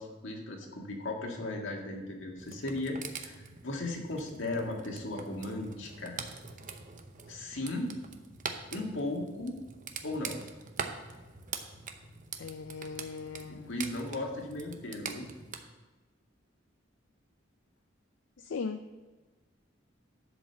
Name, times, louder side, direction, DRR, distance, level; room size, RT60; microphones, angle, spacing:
voice 1, 0.0-6.2 7.3-8.0 8.7-9.6 10.0-10.4 13.7-15.3, left 2 dB, 90° left, 1 dB, 1.8 m, -36 dB
sound 1, 2.4-15.6, right 5 dB, 45° right, 0.8 m, -44 dB
voice 2, 12.4-13.8 18.4-18.8, left 5 dB, 70° left, 8 dB, 0.5 m, -39 dB
11.0 x 5.1 x 7.0 m, 1.3 s
head